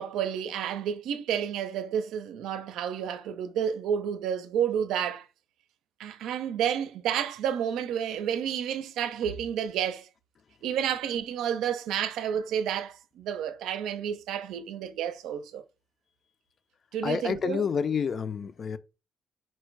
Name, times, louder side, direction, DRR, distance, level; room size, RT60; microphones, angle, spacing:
voice 1, 0.0-5.3 6.0-10.1 10.6-15.6 16.9-17.7, right 9 dB, 85° right, 0.5 m, -30 dB
voice 2, 17.0-18.8, left 6 dB, 50° left, 0.4 m, -29 dB
4.4 x 2.2 x 4.5 m
cardioid pair, 90°, 0 cm